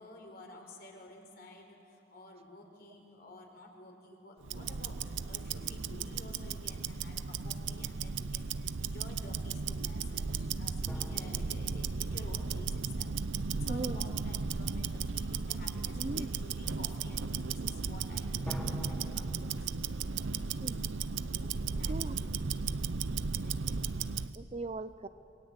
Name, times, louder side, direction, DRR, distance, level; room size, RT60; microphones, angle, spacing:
voice 1, 0.0-13.1 13.6-20.0 21.4-22.7 23.2-23.9, left 1 dB, 55° left, 2 dB, 4.2 m, -52 dB
Tick-tock, 4.4-24.4, right 5 dB, 80° right, 0.7 m, -35 dB
sound 1, 10.9-14.2 18.5-21.8, equal, 10° left, 3.1 m, -48 dB
voice 2, 13.7-14.0 16.0-16.3 16.6-16.8 20.6-20.8 21.9-22.2 24.3-25.1, right 2 dB, 35° right, 13 dB, 0.6 m, -38 dB
27.5 x 21.5 x 8.2 m, 2.6 s
head